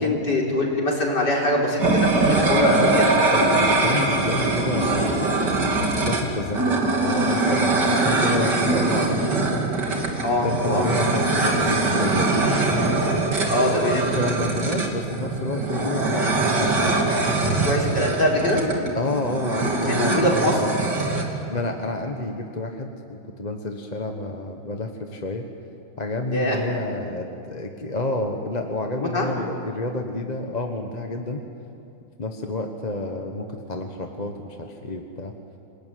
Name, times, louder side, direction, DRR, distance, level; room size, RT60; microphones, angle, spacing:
voice 1, 0.0-2.8 10.2-10.9 13.5-14.1 17.6-18.7 19.8-20.6 26.3-26.6 29.1-29.3, left 1 dB, 55° left, -2 dB, 4.8 m, -23 dB
sound 1, 1.8-21.2, right 2 dB, 55° right, 3.3 m, -22 dB
voice 2, 3.3-5.5 6.0-9.6 10.4-12.4 13.6-13.7 14.0-17.1 17.8-18.0 18.9-20.7 21.4-25.5 26.0-31.4 32.2-35.3, left 2 dB, 25° left, 4 dB, 1.2 m, -29 dB
28.0 x 19.0 x 9.4 m, 2.7 s
omnidirectional pair, 2.2 m